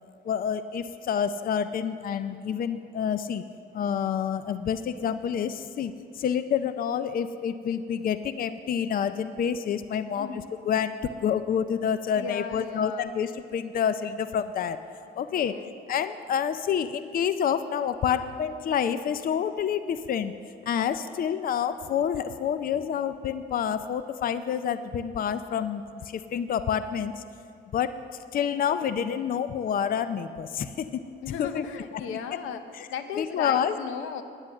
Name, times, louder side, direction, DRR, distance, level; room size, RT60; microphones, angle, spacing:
voice 1, 0.2-3.4 3.7-10.9 11.2-14.8 15.2-15.5 15.9-20.3 20.7-27.1 27.7-28.0 28.3-31.0 31.4-31.6 31.9-32.0 33.2-33.7, left 8 dB, 45° left, 12 dB, 0.5 m, -28 dB
voice 2, 10.1-10.5 12.1-13.1 15.3-15.7 31.2-32.6 32.9-34.2, left 7 dB, 90° left, 9 dB, 0.8 m, -36 dB
9.7 x 9.7 x 7.1 m, 2.5 s
cardioid pair, 90°, 20 cm